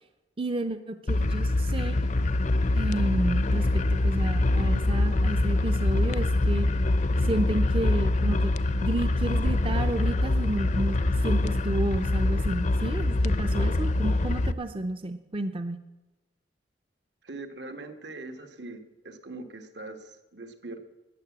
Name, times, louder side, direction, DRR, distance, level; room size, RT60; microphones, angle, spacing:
voice 1, 0.4-2.0 2.7-6.7 7.2-8.5 8.8-11.0 11.2-15.8, right 2 dB, 30° right, 8 dB, 0.6 m, -31 dB
sound 1, 1.1-14.5, left 2 dB, 45° left, 0.5 m, -24 dB
voice 2, 17.2-20.8, right 2 dB, 75° right, 6 dB, 1.6 m, -41 dB
13.5 x 9.4 x 8.5 m, 1.1 s
head